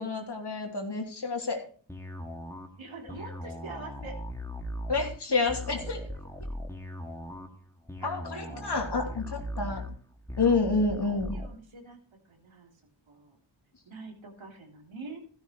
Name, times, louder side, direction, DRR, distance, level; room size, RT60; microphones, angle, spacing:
voice 1, 0.0-1.6 4.9-6.0 8.0-9.8 10.4-11.4, left 3 dB, 55° left, 2 dB, 3.1 m, -29 dB
sound 1, 1.9-11.5, equal, 5° left, 2.1 m, -39 dB
voice 2, 2.8-4.2 8.0-8.1 8.3-8.6 11.3-12.0 12.3-12.7 13.1-13.4 13.9-15.2, right 3 dB, 70° right, 1 dB, 3.3 m, -44 dB
13.5 x 12.5 x 3.0 m, 0.42 s
cardioid pair, 45°, 49 cm